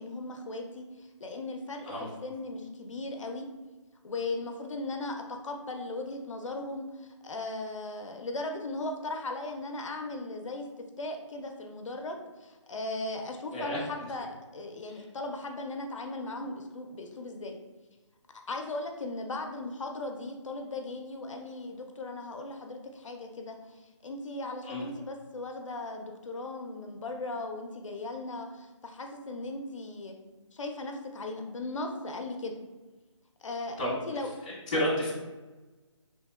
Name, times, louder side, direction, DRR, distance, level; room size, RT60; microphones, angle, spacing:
voice 1, 0.0-3.4 4.0-10.7 11.0-17.6 18.5-30.1 30.5-32.6 33.4-33.8 34.1-34.3, left 2 dB, 75° left, 3 dB, 0.4 m, -37 dB
voice 2, 13.5-13.8 14.9-15.0 24.6-24.8 33.8-33.9 34.4-35.1, equal, 15° left, -9 dB, 0.5 m, -31 dB
2.8 x 2.7 x 2.3 m, 1.2 s
hypercardioid pair, 170°, 16 cm